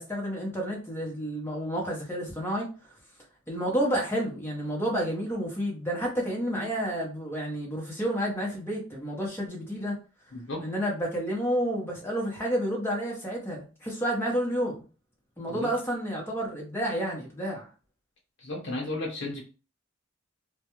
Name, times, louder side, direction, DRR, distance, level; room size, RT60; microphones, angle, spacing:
voice 1, 0.0-2.7 3.5-9.9 10.6-14.8 15.4-17.7, equal, 10° left, 0.8 m, -30 dB
voice 2, 10.3-10.7 15.5-15.7 18.4-19.4, left 2 dB, 55° left, 1.0 m, -34 dB
2.4 x 2.2 x 2.9 m
head